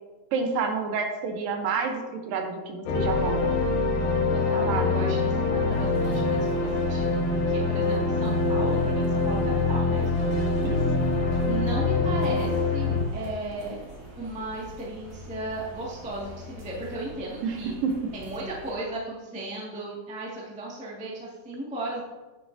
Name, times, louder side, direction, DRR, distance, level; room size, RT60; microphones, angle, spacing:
voice 1, 0.3-3.5 4.7-5.0 10.6-10.8 17.4-17.9, right 5 dB, 75° right, 4 dB, 2.5 m, -29 dB
sound 1, 2.9-13.0, left 3 dB, 70° left, 2.8 m, -24 dB
voice 2, 4.3-10.2 11.4-13.8 14.2-17.7 18.1-22.0, right 2 dB, 5° right, -5 dB, 0.6 m, -36 dB
sound 2, 5.7-18.7, equal, 40° right, 1.5 m, -43 dB
9.8 x 8.3 x 2.7 m, 1.2 s
omnidirectional pair, 4.1 m